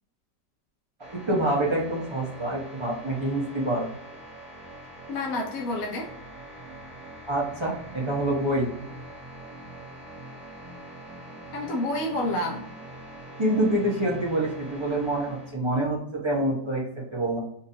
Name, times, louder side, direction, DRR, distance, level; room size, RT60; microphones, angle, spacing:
sound 1, 1.0-15.5, right 1 dB, 60° right, 1.5 m, -43 dB
voice 1, 1.1-3.9 7.3-8.7 13.4-17.4, right 1 dB, 30° right, -4 dB, 0.5 m, -26 dB
voice 2, 5.1-6.1 11.5-12.7, left 1 dB, 65° left, 0 dB, 0.9 m, -29 dB
4.0 x 2.6 x 2.7 m, 0.74 s
omnidirectional pair, 1.9 m